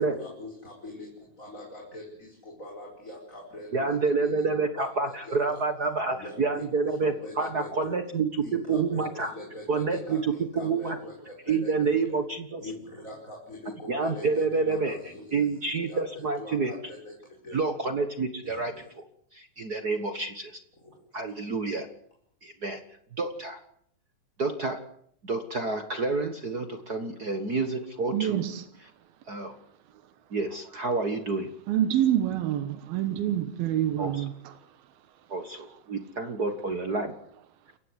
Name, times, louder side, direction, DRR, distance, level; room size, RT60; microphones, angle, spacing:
voice 1, 0.0-4.4 4.7-5.6 6.1-7.9 8.4-12.2 12.6-17.6 18.4-18.9 20.8-21.0, left 1 dB, 20° left, 5.2 m, -43 dB
voice 2, 3.7-9.3 9.7-11.0 11.5-12.6 13.9-15.0 15.3-16.7 17.5-19.0 19.3-20.6 21.1-21.9 22.4-22.8 23.2-23.6 24.4-24.8 25.2-28.4 29.3-29.5 30.3-31.5 34.0-34.3 35.3-37.1, right 4 dB, 60° right, 0.9 m, -28 dB
voice 3, 28.1-28.6 31.7-34.5, right 11 dB, 85° right, 3.1 m, -27 dB
29.5 x 15.5 x 8.1 m
omnidirectional pair, 4.1 m